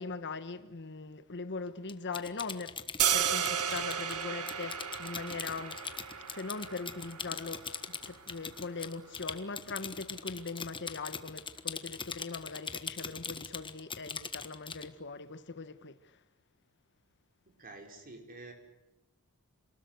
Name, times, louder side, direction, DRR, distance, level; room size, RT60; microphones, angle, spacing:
voice 1, 0.0-2.8 3.1-5.8 6.3-7.7 8.1-16.2, left 4 dB, 55° left, 1.3 m, -41 dB
Typing, 1.9-14.9, left 6 dB, 20° left, 1.4 m, -41 dB
sound 1, 3.0-9.1, right 8 dB, 80° right, 1.9 m, -34 dB
voice 2, 17.6-18.5, right 2 dB, 40° right, 5.4 m, -48 dB
28.5 x 20.0 x 8.1 m
head